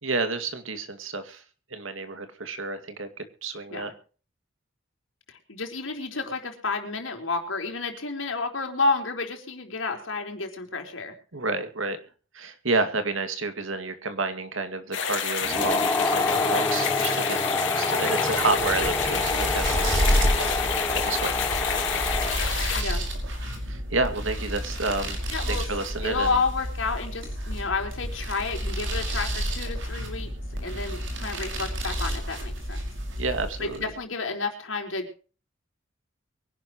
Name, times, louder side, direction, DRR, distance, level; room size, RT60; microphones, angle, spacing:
voice 1, 0.0-1.4 1.7-3.9 11.3-12.0 12.3-20.2 20.9-21.4 23.7-25.2 25.5-26.3 33.2-33.9, right 3 dB, 90° right, 8 dB, 2.3 m, -30 dB
voice 2, 5.3-11.1 16.5-16.7 22.7-23.0 25.3-25.7 26.0-30.3 30.6-32.8 33.6-35.1, left 4 dB, 80° left, 4 dB, 3.9 m, -30 dB
sound 1, 14.9-22.8, left 7 dB, 65° left, 3.2 m, -29 dB
sound 2, 15.4-22.6, left 2 dB, 15° left, 1.5 m, -28 dB
sound 3, 18.4-33.9, equal, 70° right, 5.3 m, -30 dB
23.5 x 11.5 x 3.1 m, 0.38 s
head